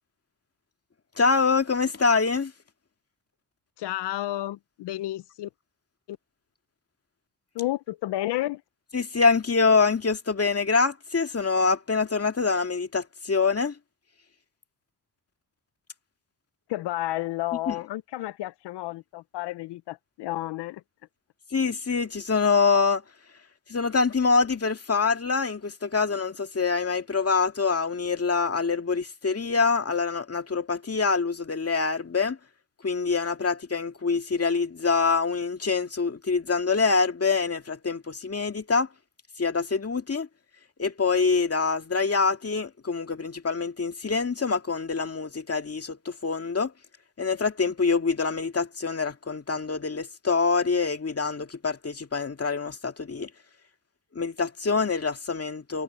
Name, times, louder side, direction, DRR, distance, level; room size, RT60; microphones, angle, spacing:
voice 1, 1.2-2.5 8.9-13.7 17.7-17.8 21.5-23.0 23.7-32.4 32.8-38.9 39.4-40.3 40.8-46.7 47.2-53.3 54.2-55.8, left 4 dB, 35° left, 2.3 m, -25 dB
voice 2, 3.8-5.5 6.1-6.2 7.5-8.6 16.7-20.8, left 16 dB, 80° left, 0.7 m, -31 dB
supercardioid pair, 50°, 41 cm